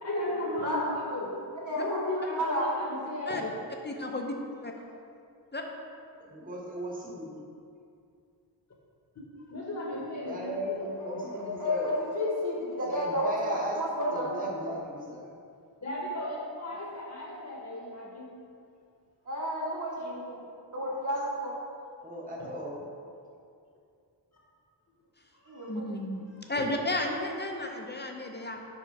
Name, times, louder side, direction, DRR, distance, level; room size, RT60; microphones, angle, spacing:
voice 1, 0.0-0.8 1.1-1.3 1.8-3.5 9.5-10.8 15.8-18.3 22.4-22.5 25.4-25.7 26.6-26.7, left 1 dB, 40° left, -3 dB, 1.0 m, -35 dB
voice 2, 0.6-1.0 1.6-2.7 11.0-14.5 19.3-20.4 20.7-21.5 25.5-25.8, equal, 40° right, -5 dB, 1.6 m, -31 dB
voice 3, 3.8-4.3 4.6-4.7 5.5-5.6 25.7-26.2 26.5-28.6, left 1 dB, 25° left, 2 dB, 0.5 m, -33 dB
voice 4, 6.2-7.4 10.3-11.9 12.9-13.8 14.1-15.3 22.0-22.8, equal, 20° right, -3 dB, 0.9 m, -37 dB
4.9 x 4.4 x 5.8 m, 2.4 s
wide cardioid pair, 110°, 44 cm